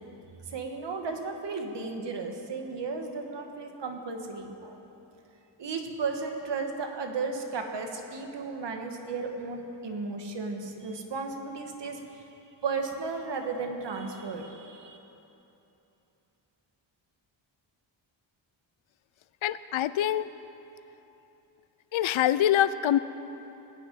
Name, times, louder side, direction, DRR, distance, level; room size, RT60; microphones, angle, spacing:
voice 1, 0.5-4.8 5.6-12.0 12.6-15.0, right 4 dB, 60° right, 4 dB, 1.6 m, -34 dB
voice 2, 19.4-20.3 21.9-23.0, left 11 dB, 75° left, 15 dB, 0.6 m, -24 dB
19.5 x 6.5 x 9.0 m, 3.0 s
wide cardioid pair, 135°, 48 cm